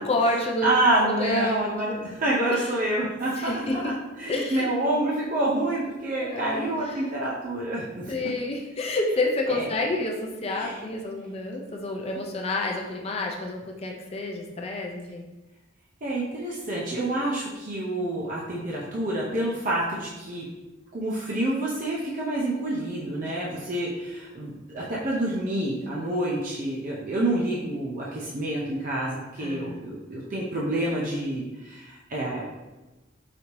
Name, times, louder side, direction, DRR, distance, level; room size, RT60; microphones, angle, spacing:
voice 1, 0.0-0.7 1.0-1.5 2.1-2.2 2.5-2.7 3.4-3.9 4.3-5.0 6.2-7.1 8.1-15.2 23.2-23.3 29.4-29.8, left 2 dB, 30° left, 1 dB, 0.4 m, -29 dB
voice 2, 0.6-3.9 4.2-8.1 9.5-9.7 10.6-10.8 16.0-20.5 20.9-32.4, right 1 dB, 45° right, -5 dB, 0.6 m, -28 dB
5.0 x 2.7 x 3.0 m, 1.1 s
head